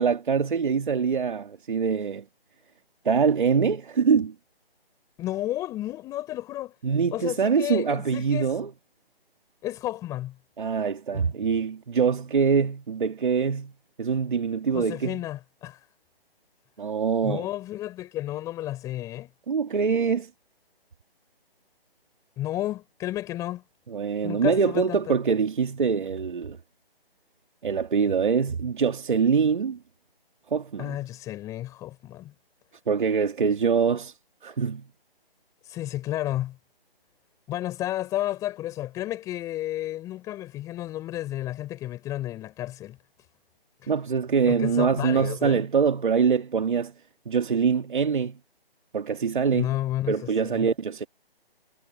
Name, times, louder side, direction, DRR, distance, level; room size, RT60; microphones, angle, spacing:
voice 1, 0.0-2.2 3.0-4.3 6.8-8.7 10.6-13.7 14.0-15.2 16.8-17.5 19.5-20.3 23.9-26.6 27.6-29.8 30.5-31.0 32.9-34.1 34.4-34.9 43.9-46.9 47.3-48.4 48.9-49.7 50.1-51.1, right 6 dB, 55° right, 2.1 m, -24 dB
voice 2, 5.2-6.7 7.1-8.6 9.6-10.3 11.1-11.3 14.7-15.9 17.2-19.3 22.4-23.6 24.2-25.2 30.8-32.3 35.6-36.6 37.5-43.0 43.8-43.9 44.5-45.7 49.5-50.1 50.4-50.7, left 14 dB, 10° left, 4.7 m, -32 dB
figure-of-eight pair, 160°, 30 cm